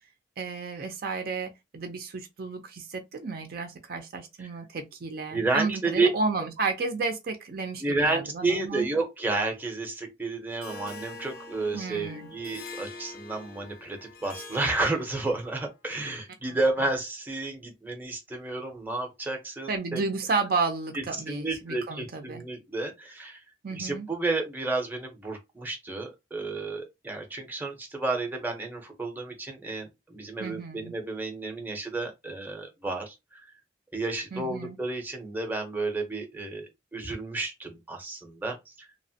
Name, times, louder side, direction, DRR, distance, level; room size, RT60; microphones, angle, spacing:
voice 1, 0.4-8.9 11.7-12.3 16.5-16.6 19.7-22.4 23.6-24.1 30.4-30.9 34.3-34.8, right 4 dB, 55° right, 0.5 m, -32 dB
voice 2, 5.3-6.1 7.8-20.0 20.9-23.4 23.7-33.4 33.9-38.9, right 3 dB, 10° right, 0.6 m, -31 dB
Harp, 10.6-15.6, left 3 dB, 55° left, 0.6 m, -44 dB
2.9 x 2.1 x 2.7 m
head